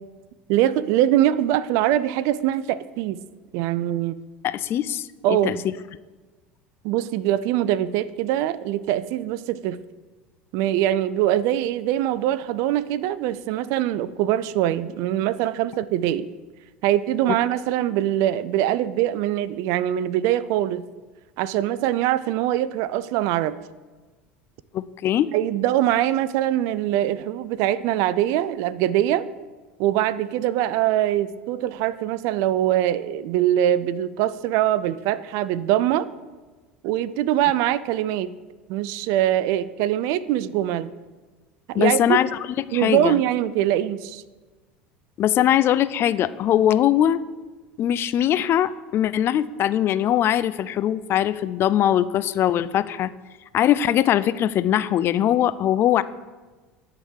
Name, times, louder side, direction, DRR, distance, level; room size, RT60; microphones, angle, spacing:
voice 1, 0.5-3.2 3.5-4.2 5.2-5.6 6.8-9.8 10.5-16.3 16.8-20.8 21.4-23.6 25.3-29.3 29.8-36.1 36.8-38.3 38.7-40.9 41.7-42.2 42.7-44.2, right 12 dB, 65° right, 17 dB, 0.4 m, -23 dB
voice 2, 4.4-5.6 24.7-25.3 41.8-42.3 42.7-43.2 45.2-47.2 47.8-53.1 53.5-56.0, left 11 dB, 45° left, 16 dB, 0.3 m, -21 dB
9.9 x 3.7 x 6.3 m, 1.3 s
hypercardioid pair, 80°, 6 cm